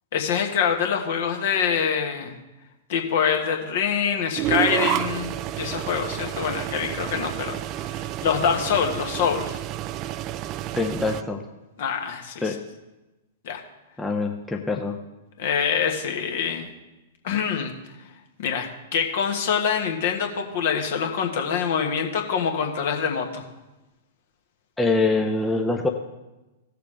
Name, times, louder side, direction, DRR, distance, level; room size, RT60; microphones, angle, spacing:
voice 1, 0.1-2.4 2.9-9.6 11.8-12.5 13.4-13.6 15.4-16.7 17.2-17.7 18.4-23.4, left 7 dB, 55° left, 3 dB, 1.4 m, -25 dB
sound 1, 4.4-11.2, right 13 dB, 35° right, 0.3 m, -30 dB
voice 2, 10.7-11.4 12.4-12.6 14.0-15.0 24.8-25.9, left 3 dB, 10° left, 1 dB, 0.7 m, -24 dB
16.5 x 6.8 x 3.3 m, 1.0 s
figure-of-eight pair, 105°, 0 cm